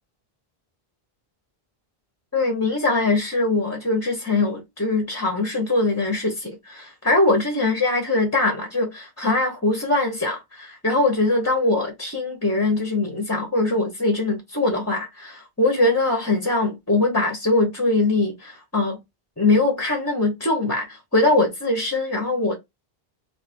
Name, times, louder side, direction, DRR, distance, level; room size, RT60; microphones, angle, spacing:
voice 1, 2.3-19.0 19.4-22.6, left 2 dB, 15° left, 0.7 m, -22 dB
2.6 x 2.5 x 4.2 m
omnidirectional pair, 1.0 m